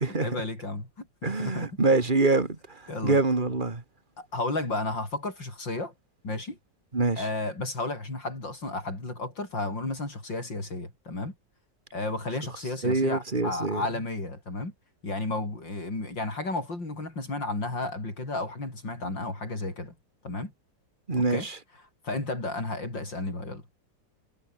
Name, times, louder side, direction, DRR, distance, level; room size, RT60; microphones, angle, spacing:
voice 1, 0.2-1.7 2.9-3.2 4.2-5.9 6.2-6.6 7.2-11.3 11.9-14.7 15.0-19.9 20.2-20.5 21.2-21.5 22.0-23.6, left 2 dB, 85° left, 8.1 m, -33 dB
voice 2, 1.2-3.8 6.9-7.2 12.8-13.8 21.1-21.6, right 3 dB, 25° right, 2.5 m, -25 dB
omnidirectional pair, 2.0 m